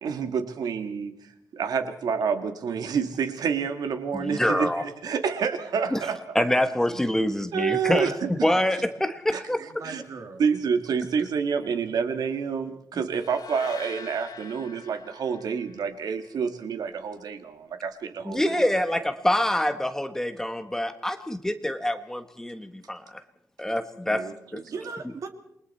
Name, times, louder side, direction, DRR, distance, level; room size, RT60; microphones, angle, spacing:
voice 1, 0.0-6.4 7.5-8.5 9.3-9.4 9.8-10.0 10.4-18.8 24.1-24.8, right 6 dB, 75° right, 8 dB, 1.9 m, -28 dB
voice 2, 4.1-4.8 5.9-6.0 6.3-8.1 8.4-9.6 18.2-23.2 23.6-24.3 24.5-24.6, left 1 dB, 5° left, 9 dB, 1.2 m, -26 dB
voice 3, 9.5-10.5 14.4-14.5 18.5-18.7 24.6-25.3, right 4 dB, 55° right, 5 dB, 2.6 m, -39 dB
sound 1, 13.1-16.3, left 6 dB, 75° left, 1.4 m, -46 dB
28.5 x 22.5 x 4.3 m, 0.76 s
wide cardioid pair, 165°, 7 cm